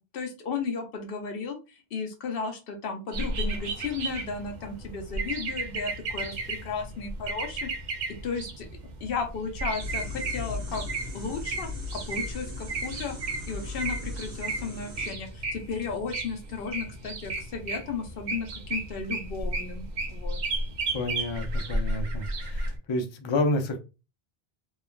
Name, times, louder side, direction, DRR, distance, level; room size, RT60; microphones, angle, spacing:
voice 1, 0.1-7.7 8.1-8.7 9.0-10.8 11.1-13.2 13.5-20.4, left 5 dB, 70° left, 0.8 m, -34 dB
sound 1, 3.1-22.8, right 2 dB, 55° right, 0.6 m, -34 dB
sound 2, 9.8-15.1, left 2 dB, 75° right, 1.3 m, -38 dB
voice 2, 20.9-23.8, left 2 dB, 45° left, 0.3 m, -29 dB
3.2 x 2.2 x 2.2 m
omnidirectional pair, 1.0 m